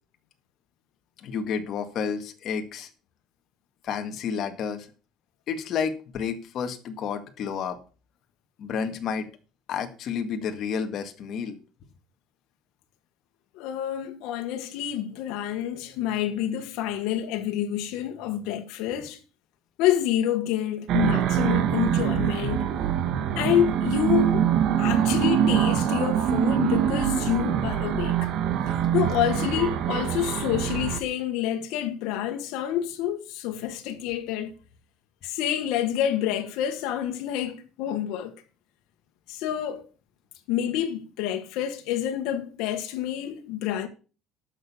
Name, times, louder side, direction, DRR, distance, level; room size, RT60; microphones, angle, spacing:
voice 1, 1.2-2.9 3.8-4.9 5.5-7.8 8.6-9.3 9.7-11.6, left 6 dB, 45° left, 1.8 m, -30 dB
voice 2, 13.5-19.2 19.8-22.7 23.4-24.4 24.8-28.3 28.9-34.5 35.2-38.3 39.3-39.8 40.5-43.9, left 11 dB, 80° left, 1.5 m, -28 dB
sound 1, 20.9-31.0, right 9 dB, 55° right, 1.2 m, -24 dB
11.5 x 6.6 x 7.1 m
cardioid pair, 160°, 0 cm